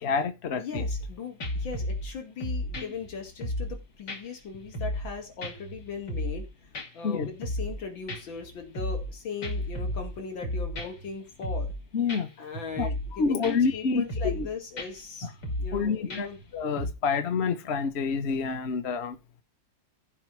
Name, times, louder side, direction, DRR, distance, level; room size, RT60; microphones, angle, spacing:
voice 1, 0.0-0.8 2.8-2.9 7.0-7.3 11.9-12.3 12.8-12.9 13.2-14.5 15.7-16.3 16.5-19.2, left 5 dB, 40° left, 1.1 m, -28 dB
voice 2, 0.6-6.5 6.9-11.7 12.4-15.3 15.6-16.4, left 5 dB, 80° left, 3.1 m, -39 dB
sound 1, 0.7-1.1 1.4-2.1 2.4-3.8 4.1-4.2 4.5-5.1 5.4-6.4 6.7-6.9 7.2-7.8 8.1-9.1 9.4-11.1 11.4-11.8 12.1-12.2 12.5-13.1 13.4-13.8 14.1-14.5 14.8-14.9 15.2-15.8 16.1-16.4 16.8-16.9, left 1 dB, 60° left, 3.2 m, -33 dB
15.0 x 5.5 x 4.7 m
omnidirectional pair, 2.1 m